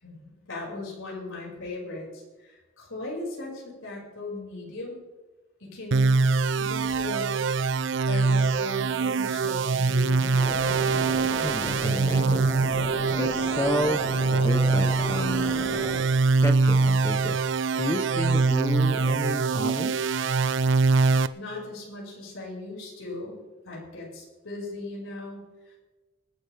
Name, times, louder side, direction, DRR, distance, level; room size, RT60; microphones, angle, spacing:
voice 1, 0.0-5.0 5.6-7.5 8.0-10.8 21.3-25.8, left 2 dB, 80° left, -3 dB, 5.5 m, -38 dB
sound 1, 5.9-21.3, right 4 dB, 60° right, 0.5 m, -23 dB
sound 2, 10.4-16.0, left 1 dB, 30° left, 1.5 m, -36 dB
voice 2, 11.4-12.4 13.2-15.9 16.4-17.4 17.8-20.0, left 1 dB, 15° left, 6 dB, 0.8 m, -31 dB
25.0 x 10.5 x 3.4 m, 1.2 s
head